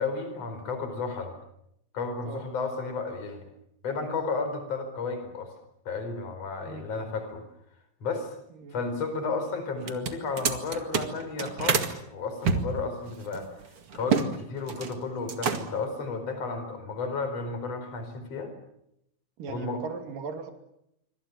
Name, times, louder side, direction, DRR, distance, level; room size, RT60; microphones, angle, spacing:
voice 1, 0.0-1.3 1.9-3.4 3.8-5.5 5.9-7.4 8.0-8.3 8.7-13.5 13.9-18.5 19.5-19.8, left 4 dB, 50° left, 8 dB, 5.5 m, -33 dB
sound 1, 9.8-11.9 12.4-14.3 14.6-15.0 15.3-15.9, right 6 dB, 45° right, 2.7 m, -28 dB
voice 2, 19.4-20.5, right 5 dB, 75° right, 6 dB, 4.4 m, -37 dB
27.0 x 25.0 x 7.2 m, 0.77 s
omnidirectional pair, 3.9 m